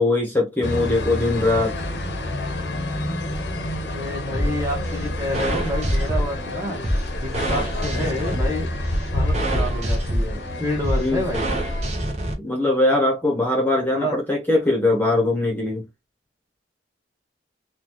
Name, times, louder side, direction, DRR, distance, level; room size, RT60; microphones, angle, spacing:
voice 1, 0.0-1.8 11.0-11.2 12.4-15.8, left 2 dB, 10° left, 1.0 m, -21 dB
sound 1, 0.6-11.9, left 1 dB, 65° left, 0.7 m, -29 dB
voice 2, 3.8-6.8 7.2-8.7 9.1-11.5 13.9-14.2, left 1 dB, 15° right, 1.1 m, -28 dB
sound 2, 4.3-12.3, right 1 dB, 35° right, 0.8 m, -26 dB
3.9 x 2.3 x 2.9 m
head